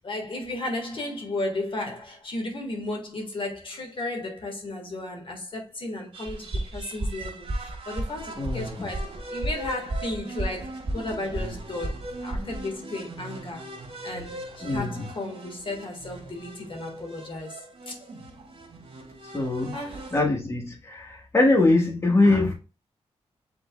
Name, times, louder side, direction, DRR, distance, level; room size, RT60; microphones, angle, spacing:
voice 1, 0.0-13.7 14.0-17.9 19.7-20.1, left 2 dB, 50° left, 1.6 m, -34 dB
sound 1, 6.1-20.2, right 2 dB, 55° right, 1.6 m, -41 dB
sound 2, 6.3-12.6, right 1 dB, 25° right, 0.7 m, -32 dB
voice 2, 8.4-8.9 14.6-15.1 19.2-19.8 20.1-22.5, left 2 dB, 25° left, 1.4 m, -23 dB
5.9 x 3.8 x 2.3 m
cardioid pair, 90°, 11 cm